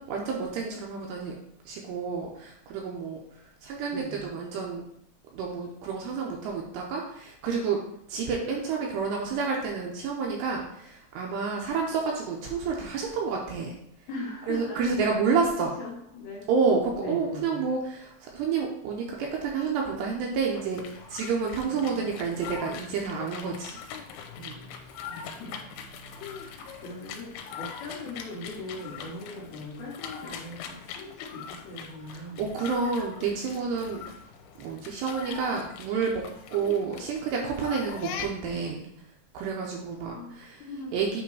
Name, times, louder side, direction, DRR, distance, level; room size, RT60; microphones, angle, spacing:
voice 1, 0.0-1.3 1.7-3.2 3.6-4.8 5.3-7.8 8.1-13.7 14.5-15.7 16.5-23.8 24.4-24.6 26.7-26.8 32.1-34.0 34.6-36.2 36.5-38.9 39.3-41.2, right 5 dB, 80° right, -1 dB, 2.6 m, -29 dB
voice 2, 3.9-4.3 14.1-15.0 15.3-15.4 15.8-16.5 17.0-17.6 21.7-22.2 25.0-25.6 26.3-32.4 40.1-41.1, left 2 dB, 70° left, -4 dB, 2.7 m, -40 dB
sound 1, 20.5-38.7, left 7 dB, 85° left, 3.2 m, -42 dB
8.4 x 3.3 x 4.7 m, 0.73 s
omnidirectional pair, 5.5 m